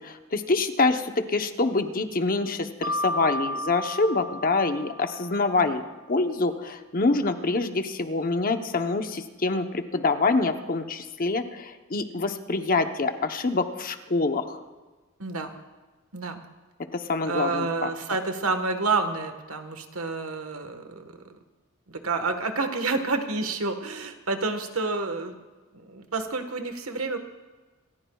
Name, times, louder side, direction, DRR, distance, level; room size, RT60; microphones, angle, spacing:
voice 1, 0.0-14.6 16.9-17.9, left 3 dB, 40° left, 7 dB, 0.9 m, -26 dB
Mallet percussion, 2.8-5.6, left 1 dB, 20° right, 1.0 m, -33 dB
voice 2, 15.2-15.5 16.1-16.4 17.2-21.0 21.9-25.3 25.7-27.2, right 3 dB, 80° right, 7 dB, 1.4 m, -29 dB
27.0 x 14.5 x 2.4 m, 1.3 s
head